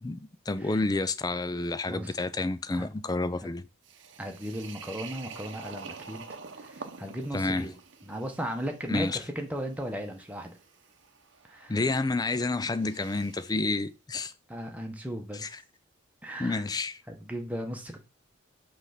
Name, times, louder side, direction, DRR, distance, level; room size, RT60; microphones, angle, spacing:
voice 1, 0.0-3.7 7.3-7.7 8.9-9.2 11.7-14.3 15.3-15.5 16.4-17.0, left 2 dB, 20° left, 0.4 m, -29 dB
sound 1, 3.8-13.6, right 5 dB, 60° right, 0.8 m, -48 dB
voice 2, 4.2-6.2 6.6-7.7 8.0-10.6 11.5-11.8 12.4-12.5 14.5-15.6 16.2-16.6 17.1-18.0, equal, 5° right, 1.1 m, -36 dB
6.0 x 3.4 x 5.8 m
head